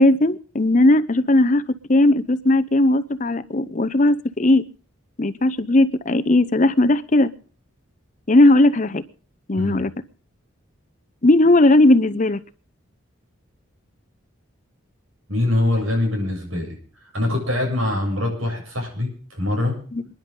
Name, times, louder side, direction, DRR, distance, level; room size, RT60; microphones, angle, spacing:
voice 1, 0.0-1.6 1.9-4.6 5.2-7.3 8.3-9.0 9.5-9.9 11.2-12.4 19.9-20.0, left 1 dB, 35° left, 13 dB, 0.7 m, -17 dB
voice 2, 9.6-9.9 15.3-19.8, left 1 dB, 75° right, 1 dB, 7.6 m, -24 dB
28.0 x 10.5 x 3.8 m, 0.42 s
head